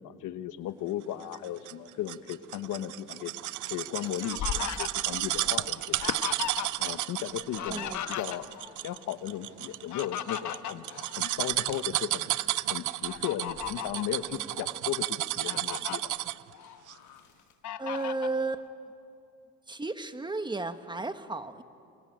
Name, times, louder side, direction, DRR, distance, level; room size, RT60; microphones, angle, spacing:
voice 1, 0.0-3.3 3.7-6.1 6.8-8.5 8.8-10.8 11.2-12.3 12.7-15.1 15.3-16.1, left 11 dB, 90° left, 12 dB, 1.2 m, -36 dB
sound 1, 1.3-16.5 16.9-17.0, right 16 dB, 80° right, 0.6 m, -32 dB
Fowl, 3.6-6.9 7.2-8.8 9.7-11.8 12.2-12.4 13.1-14.1 14.7-14.8 15.2-16.0 16.5-17.2 17.6-18.4, left 11 dB, 75° left, 1.1 m, -37 dB
voice 2, 7.7-8.0 17.8-18.7 19.7-21.6, right 3 dB, 15° right, 9 dB, 1.5 m, -33 dB
27.0 x 24.0 x 9.0 m, 2.6 s
cardioid pair, 90°, 30 cm